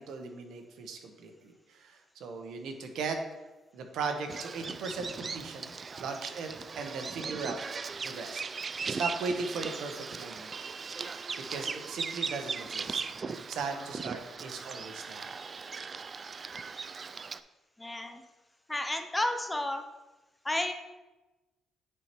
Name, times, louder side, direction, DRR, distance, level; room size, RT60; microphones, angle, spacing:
voice 1, 0.0-3.2 3.7-5.7 6.0-6.5 6.7-7.6 8.0-8.4 8.8-10.5 11.5-13.0 13.3-15.3, right 4 dB, 80° right, 5 dB, 1.0 m, -37 dB
Bird vocalization bird call bird song, 4.3-17.4, right 5 dB, 40° right, 0.3 m, -38 dB
voice 2, 17.8-18.2 18.7-19.8 20.4-20.7, left 1 dB, 15° left, 6 dB, 0.6 m, -31 dB
9.7 x 4.5 x 3.0 m, 1.1 s
cardioid pair, 90°, 0 cm